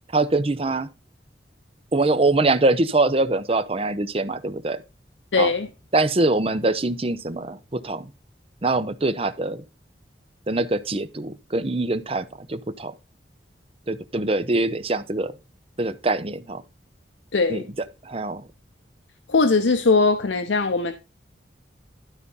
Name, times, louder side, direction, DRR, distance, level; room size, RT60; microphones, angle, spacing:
voice 1, 0.1-0.9 1.9-4.8 5.4-5.5 5.9-8.1 8.6-9.6 10.5-12.9 13.9-15.3 15.8-16.6 17.5-17.6 18.1-18.4, right 2 dB, 30° right, 0.7 m, -23 dB
voice 2, 5.3-5.7 17.3-17.6 19.3-20.9, left 3 dB, 85° left, 0.8 m, -20 dB
12.5 x 4.1 x 5.5 m
head